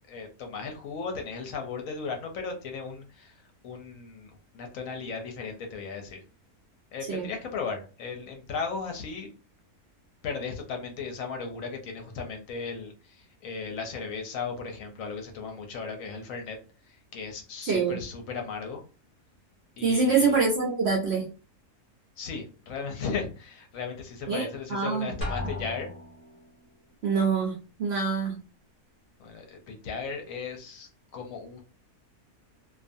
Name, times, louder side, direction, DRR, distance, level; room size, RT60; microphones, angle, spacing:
voice 1, 0.1-6.2 6.9-9.3 10.2-16.6 16.8-18.8 19.8-20.4 22.2-26.0 29.2-31.6, left 5 dB, 70° left, 3 dB, 0.9 m, -36 dB
voice 2, 17.6-18.0 19.8-21.3 24.3-25.1 27.0-28.4, right 4 dB, 65° right, -2 dB, 0.7 m, -25 dB
Drum, 25.2-26.4, left 2 dB, 15° right, 0.8 m, -35 dB
2.5 x 2.4 x 2.5 m, 0.35 s
omnidirectional pair, 1.6 m